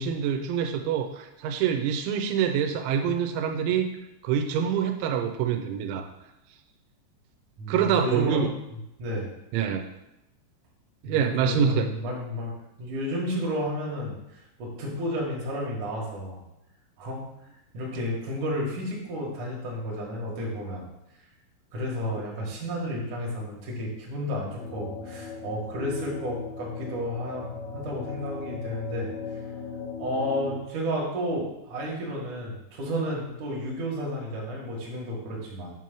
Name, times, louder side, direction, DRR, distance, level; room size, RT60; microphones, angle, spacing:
voice 1, 0.0-3.9 4.2-6.1 7.7-8.5 9.5-9.9 11.0-11.9, right 7 dB, 90° right, 5 dB, 3.0 m, -25 dB
voice 2, 7.6-8.4 9.0-9.3 11.0-12.5 12.8-16.4 17.0-17.2 17.7-20.8 21.7-29.1 30.0-35.7, equal, 60° right, -3 dB, 2.3 m, -32 dB
sound 1, 24.6-30.6, left 5 dB, 85° left, 3.4 m, -38 dB
7.5 x 3.0 x 5.9 m, 0.88 s
omnidirectional pair, 5.3 m